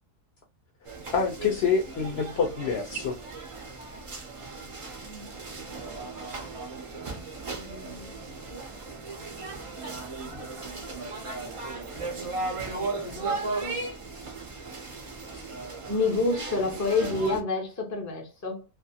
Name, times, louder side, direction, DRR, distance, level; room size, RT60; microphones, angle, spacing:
sound 1, 0.9-17.4, right 3 dB, 50° right, 0.4 m, -36 dB
voice 1, 1.1-3.1, left 5 dB, 65° left, 0.7 m, -26 dB
voice 2, 5.0-5.3 5.6-5.9 6.1-6.2 7.6-8.1 8.5-8.6 12.1-12.3 12.6-14.0 15.9-18.6, left 3 dB, 20° left, 0.4 m, -30 dB
2.5 x 2.3 x 2.7 m
omnidirectional pair, 1.4 m